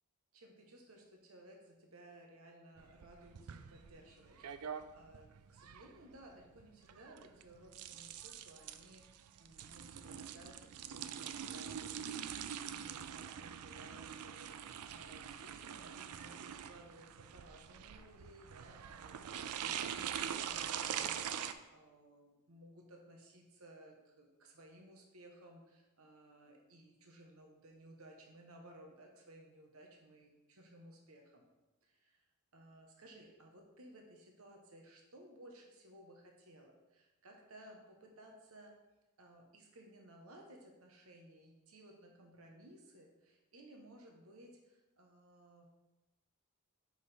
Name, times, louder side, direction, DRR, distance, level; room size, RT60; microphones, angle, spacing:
voice 1, 0.3-31.4 31.8-32.3 32.5-38.7 39.2-45.7, right 1 dB, 70° right, 2 dB, 1.0 m, -58 dB
sound 1, 2.8-21.5, right 9 dB, 90° right, 0.4 m, -44 dB
6.3 x 5.3 x 4.1 m, 1.0 s
head